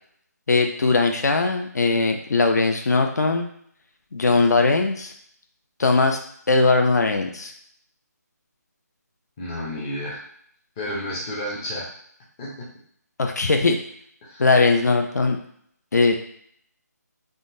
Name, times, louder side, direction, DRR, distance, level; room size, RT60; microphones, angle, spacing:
voice 1, 0.5-3.5 4.1-5.1 5.8-6.2 6.5-7.5 13.2-13.8 14.4-15.4 15.9-16.2, left 3 dB, 70° left, 4 dB, 0.5 m, -20 dB
voice 2, 9.4-10.2 10.8-11.9 12.4-12.7 14.2-14.4, left 1 dB, 10° left, -6 dB, 0.4 m, -31 dB
3.6 x 2.1 x 2.5 m, 0.65 s
figure-of-eight pair, 165°, 9 cm